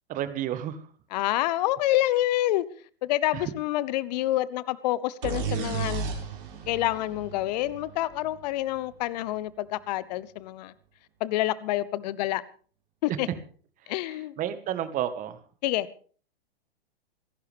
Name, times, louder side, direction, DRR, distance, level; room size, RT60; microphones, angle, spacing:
voice 1, 0.1-0.9 3.3-3.5 13.1-13.3 13.8-15.4, right 11 dB, 25° right, 1.6 m, -32 dB
voice 2, 1.1-2.7 3.0-6.1 6.7-10.7 11.2-12.4 13.0-13.3 13.9-14.3 15.6-15.9, left 15 dB, 45° left, 0.9 m, -27 dB
sound 1, 5.2-8.9, right 6 dB, 60° right, 5.7 m, -34 dB
27.5 x 11.5 x 3.5 m
figure-of-eight pair, 110°, 30 cm